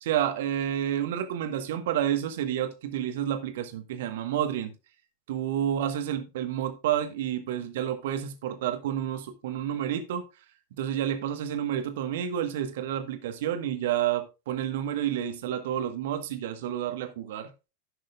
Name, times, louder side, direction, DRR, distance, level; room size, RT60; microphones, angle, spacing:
voice 1, 0.0-4.7 5.3-10.2 10.8-17.5, right 10 dB, 55° right, 1.6 m, -30 dB
16.0 x 6.2 x 2.5 m
figure-of-eight pair, 90°, 0 cm